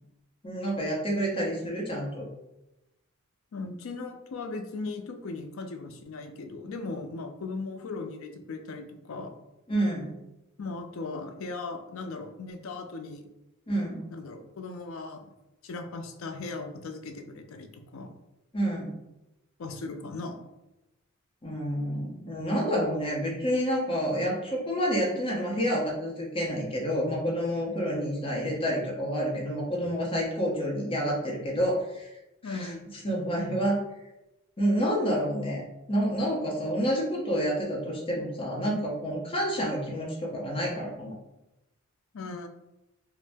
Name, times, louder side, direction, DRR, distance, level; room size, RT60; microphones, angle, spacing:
voice 1, 0.4-2.3 9.7-10.2 13.7-14.0 18.5-18.9 21.4-32.1 32.4-32.7 33.0-33.8 34.6-41.1, equal, 25° left, -3 dB, 0.7 m, -29 dB
voice 2, 3.5-9.3 10.6-13.3 14.1-15.3 15.6-18.2 19.6-20.4 32.4-32.8 42.1-42.5, left 3 dB, 65° left, 5 dB, 0.4 m, -38 dB
2.6 x 2.0 x 3.3 m, 0.94 s
head